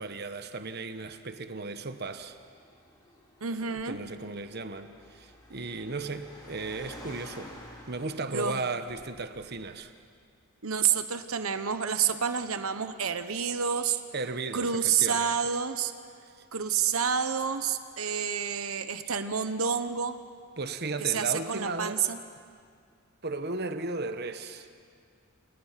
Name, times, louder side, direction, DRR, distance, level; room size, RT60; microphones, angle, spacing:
voice 1, 0.0-2.4 3.5-7.5 7.9-9.9 14.1-15.3 16.4-16.5 20.6-22.1 23.2-24.7, right 3 dB, 50° right, 9 dB, 1.1 m, -35 dB
Car, 2.0-9.9, equal, 20° left, 3.4 m, -50 dB
voice 2, 3.4-4.0 8.3-8.6 10.6-14.0 14.5-15.9 16.5-20.2 21.0-22.2, right 7 dB, 85° right, 10 dB, 1.1 m, -29 dB
29.0 x 28.0 x 5.9 m, 2.2 s
head